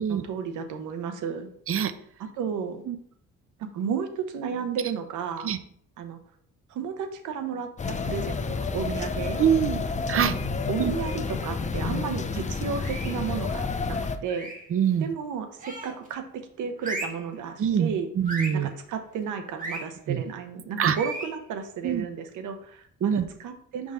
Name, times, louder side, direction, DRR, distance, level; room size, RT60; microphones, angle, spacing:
voice 1, 0.0-1.5 2.4-2.8 3.7-5.5 6.0-6.2 6.7-9.4 10.1-10.3 10.7-14.5 15.0-16.2 16.6-18.1 18.5-23.9, right 6 dB, 80° right, 7 dB, 0.9 m, -33 dB
sound 1, 7.8-14.2, left 4 dB, 25° left, 0.5 m, -30 dB
voice 2, 9.4-10.3 10.8-10.9 14.7-15.1 17.6-18.7 20.1-20.2 20.8-21.0 21.8-22.1 23.0-23.3, right 8 dB, 45° right, 11 dB, 0.6 m, -24 dB
sound 2, 12.8-13.3 14.3-14.7 15.6-16.1 16.8-17.3 18.3-18.7 19.6-19.9 20.9-21.4, right 2 dB, 25° right, 1.5 m, -35 dB
5.4 x 3.6 x 4.9 m, 0.63 s
cardioid pair, 90°, 30 cm